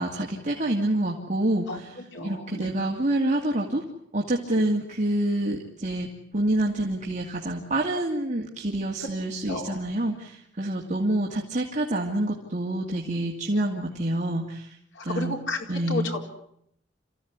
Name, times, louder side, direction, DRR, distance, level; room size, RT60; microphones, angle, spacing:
voice 1, 0.0-3.8 4.1-6.1 6.3-14.8 15.0-15.4 15.7-16.1, right 1 dB, 40° right, -1 dB, 2.6 m, -27 dB
voice 2, 2.1-2.7 4.5-4.6 9.5-9.8 15.1-15.6 15.9-16.2, left 2 dB, 80° left, 2 dB, 4.3 m, -31 dB
28.0 x 15.5 x 9.6 m, 0.73 s
head